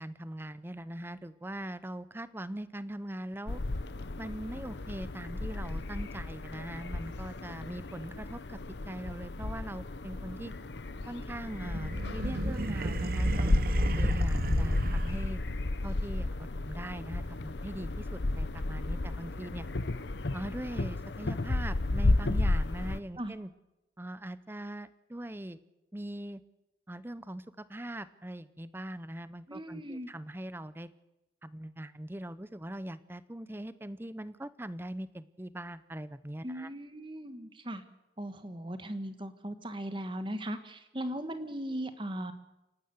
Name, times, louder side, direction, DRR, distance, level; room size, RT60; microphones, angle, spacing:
voice 1, 0.0-3.6 4.2-8.6 8.9-10.5 11.1-13.5 13.9-15.4 15.8-19.7 20.3-23.5 24.0-25.6 25.9-26.4 26.9-30.9 31.4-36.7, right 1 dB, 10° right, 15 dB, 0.6 m, -41 dB
sound 1, 3.5-23.0, left 2 dB, 70° left, 0.8 m, -33 dB
sound 2, 11.4-15.6, right 2 dB, 50° right, 0.9 m, -33 dB
voice 2, 29.5-30.1 36.4-37.8 38.2-42.3, right 1 dB, 25° right, 9 dB, 1.4 m, -38 dB
28.0 x 12.5 x 8.0 m, 0.96 s
head